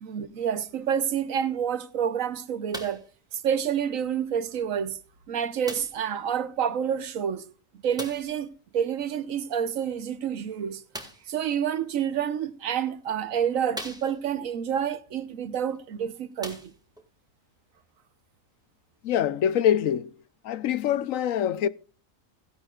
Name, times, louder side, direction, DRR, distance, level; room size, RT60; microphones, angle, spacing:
voice 1, 0.0-3.0 3.3-5.0 5.3-7.4 7.8-10.8 11.3-16.6, right 8 dB, 80° right, 1.3 m, -28 dB
sound 1, 2.7-3.1 4.0-4.1 5.6-6.1 7.9-8.4 10.9-11.3 12.3-12.4 13.0-13.1 13.7-14.4 15.7-15.8 16.3-17.1 17.9-18.0, equal, 5° right, 2.0 m, -40 dB
voice 2, 19.0-20.1 20.4-21.7, left 10 dB, 80° left, 1.1 m, -24 dB
16.5 x 11.0 x 2.4 m
omnidirectional pair, 1.4 m